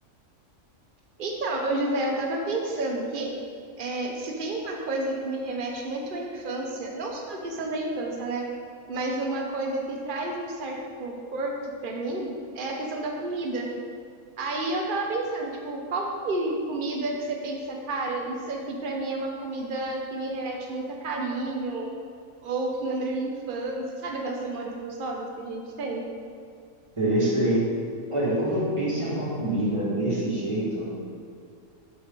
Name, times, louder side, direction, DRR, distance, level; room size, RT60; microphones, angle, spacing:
voice 1, 1.2-3.3 3.8-8.4 8.9-13.7 14.4-21.9 22.4-26.0, right 2 dB, 40° right, 0 dB, 1.1 m, -30 dB
voice 2, 27.0-27.6 28.1-30.9, right 1 dB, 20° right, -7 dB, 2.4 m, -25 dB
8.2 x 7.1 x 4.1 m, 2.2 s
omnidirectional pair, 1.5 m